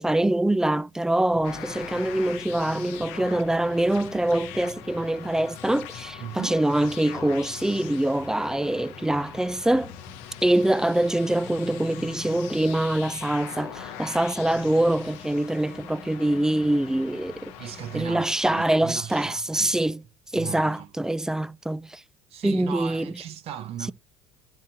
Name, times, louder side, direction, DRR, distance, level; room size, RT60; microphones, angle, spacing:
voice 1, 0.0-9.9 10.4-17.4 17.9-20.0 20.3-22.0 22.4-23.1, right 1 dB, 5° right, 0.3 m, -24 dB
sound 1, 1.3-18.2, left 5 dB, 50° left, 0.9 m, -47 dB
sound 2, 1.4-18.8, left 12 dB, 70° left, 0.6 m, -42 dB
voice 2, 6.2-6.6 17.6-19.8 20.3-20.9 22.3-23.9, right 11 dB, 55° right, 0.6 m, -37 dB
10.5 x 3.7 x 2.7 m
hypercardioid pair, 70°, 13 cm